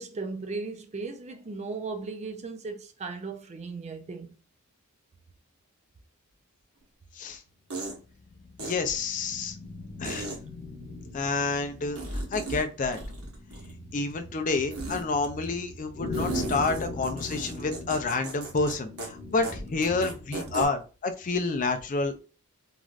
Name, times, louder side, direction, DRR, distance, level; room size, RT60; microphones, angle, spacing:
voice 1, 0.0-4.3, right 4 dB, 30° right, 0.4 m, -36 dB
sound 1, 6.8-6.9 7.7-8.0 8.6-8.7 10.0-10.4 12.0-12.6 12.9-13.8 14.7-15.0 16.1-18.7 19.0-19.1 19.4-19.5 19.8-20.7, right 2 dB, 80° right, 1.1 m, -35 dB
sound 2, 8.0-20.5, left 2 dB, 50° left, 0.9 m, -41 dB
voice 2, 8.6-9.6 10.0-10.3 11.1-12.0 12.3-13.0 13.9-22.2, left 3 dB, 35° left, 0.4 m, -29 dB
3.1 x 2.5 x 2.4 m
head